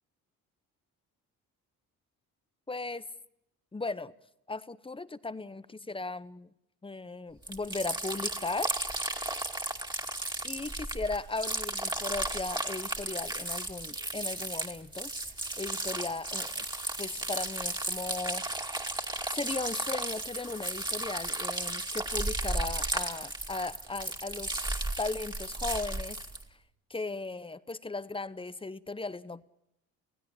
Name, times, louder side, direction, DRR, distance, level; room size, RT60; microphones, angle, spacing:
voice 1, 2.7-3.1 3.7-4.1 4.5-6.5 6.8-8.7 10.4-15.1 15.6-16.7 17.0-18.5 19.3-26.2 26.9-29.5, left 3 dB, 15° left, 0.9 m, -37 dB
sound 1, 7.4-26.4, right 2 dB, 10° right, 2.4 m, -34 dB
25.0 x 16.0 x 8.7 m
cardioid pair, 85°, 37 cm